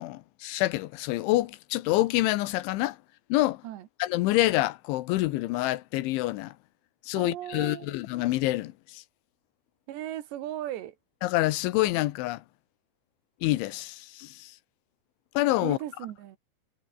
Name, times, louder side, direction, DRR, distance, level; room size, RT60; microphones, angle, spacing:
voice 1, 0.0-3.0 3.3-3.6 4.0-6.5 7.0-9.0 11.2-12.4 13.4-14.5 15.3-15.8, left 17 dB, 80° left, 3.3 m, -27 dB
voice 2, 7.2-8.0 9.9-11.0 15.6-16.4, right 12 dB, 70° right, 3.5 m, -37 dB
omnidirectional pair, 5.4 m